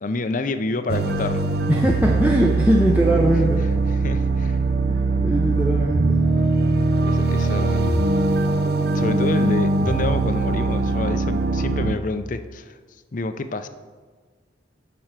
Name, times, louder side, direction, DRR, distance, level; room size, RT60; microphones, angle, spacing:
voice 1, 0.0-1.5 3.2-3.5 3.9-4.6 7.0-8.0 8.9-12.8 13.1-13.7, left 3 dB, 40° left, 10 dB, 0.5 m, -28 dB
sound 1, 0.9-12.0, right 3 dB, 50° right, 0.5 m, -21 dB
voice 2, 1.7-3.6 4.9-6.2, equal, 10° right, 0 dB, 0.5 m, -21 dB
11.0 x 4.5 x 5.9 m, 1.5 s
head